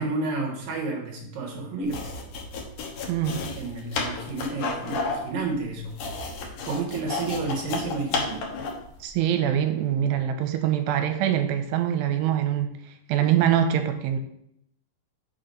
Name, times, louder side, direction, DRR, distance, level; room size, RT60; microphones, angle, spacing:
voice 1, 0.0-2.1 3.6-6.0 6.4-8.5, right 3 dB, 65° right, 1 dB, 2.4 m, -31 dB
sound 1, 1.8-8.9, left 4 dB, 70° left, 2.0 m, -32 dB
voice 2, 3.1-3.4 9.0-12.8 13.1-14.2, right 10 dB, 85° right, 7 dB, 2.8 m, -24 dB
6.8 x 5.9 x 5.2 m, 0.75 s
omnidirectional pair, 4.9 m